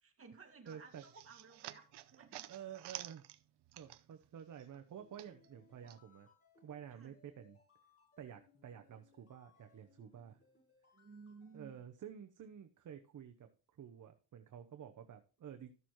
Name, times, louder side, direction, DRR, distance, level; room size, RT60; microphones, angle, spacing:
voice 1, 0.0-2.5 6.9-7.2 10.9-11.8, right 4 dB, 35° right, 3 dB, 2.0 m, -57 dB
voice 2, 0.7-1.0 2.5-3.3 3.7-6.3 6.6-7.6 8.2-10.4 11.5-15.7, right 9 dB, 50° right, 7 dB, 0.9 m, -51 dB
sound 1, 0.7-4.3 4.6-6.0, right 15 dB, 85° right, 0.7 m, -51 dB
sound 2, 5.0-11.8, left 5 dB, 35° left, 5.5 m, -69 dB
13.5 x 6.8 x 3.1 m, 0.37 s
cardioid pair, 105°, 40 cm